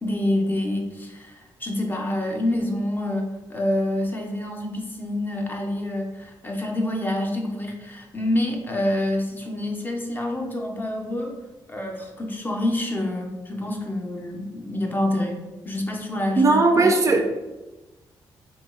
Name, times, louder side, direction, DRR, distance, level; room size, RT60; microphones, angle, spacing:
voice 1, 0.0-11.3 11.7-15.4 15.6-16.9, left 1 dB, 25° left, 1 dB, 0.5 m, -27 dB
voice 2, 16.4-17.2, right 3 dB, 40° right, 4 dB, 0.3 m, -17 dB
2.8 x 2.2 x 3.0 m, 1.1 s
cardioid pair, 90°, 8 cm